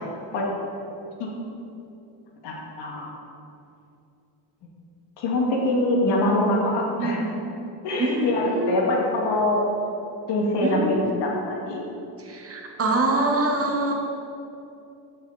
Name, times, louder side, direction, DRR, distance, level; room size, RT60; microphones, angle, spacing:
voice 1, 0.9-1.3 2.4-3.1 5.2-7.3 7.8-9.6 10.3-11.8, left 1 dB, 80° left, -2 dB, 2.2 m, -24 dB
voice 2, 7.0-7.3 8.0-8.9 10.6-11.0 12.2-13.9, right 2 dB, 35° right, 1 dB, 1.6 m, -25 dB
14.0 x 6.4 x 4.2 m, 2.7 s
cardioid pair, 115°, 41 cm